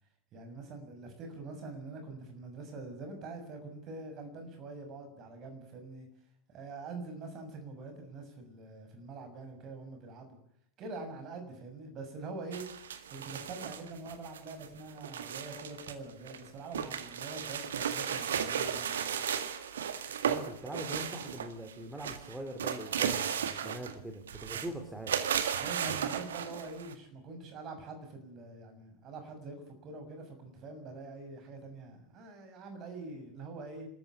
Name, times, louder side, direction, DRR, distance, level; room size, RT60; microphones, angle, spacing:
voice 1, 0.3-6.1 6.5-10.4 10.8-12.7 13.1-19.1 23.6-23.7 24.5-24.7 25.6-33.9, right 3 dB, 35° right, 6 dB, 6.6 m, -45 dB
sound 1, 12.5-15.9 16.3-21.7 22.0-24.0 24.3-24.7 25.1-26.9, right 8 dB, 65° right, 1.8 m, -35 dB
voice 2, 20.2-25.1, right 1 dB, 5° right, 5 dB, 3.1 m, -42 dB
27.5 x 14.0 x 9.8 m, 0.69 s
figure-of-eight pair, 90°, 0 cm